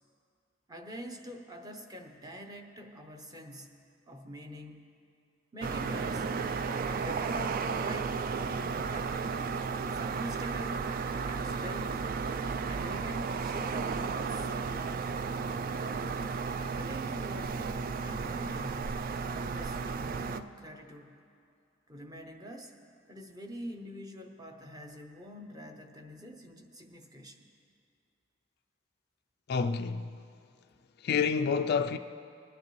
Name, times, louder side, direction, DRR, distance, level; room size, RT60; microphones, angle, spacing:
voice 1, 0.7-3.7 4.1-4.9 5.5-6.3 6.8-8.2 8.9-9.2 9.9-10.9 11.2-12.1 12.7-14.5 15.8-16.1 16.6-17.6 18.0-21.2 21.9-22.8 23.1-27.5, equal, 20° right, 0.8 m, -45 dB
sound 1, 5.6-20.4, right 5 dB, 45° right, 0.3 m, -33 dB
voice 2, 29.5-30.1 31.0-32.0, left 6 dB, 50° left, 0.3 m, -28 dB
20.0 x 9.9 x 3.1 m
head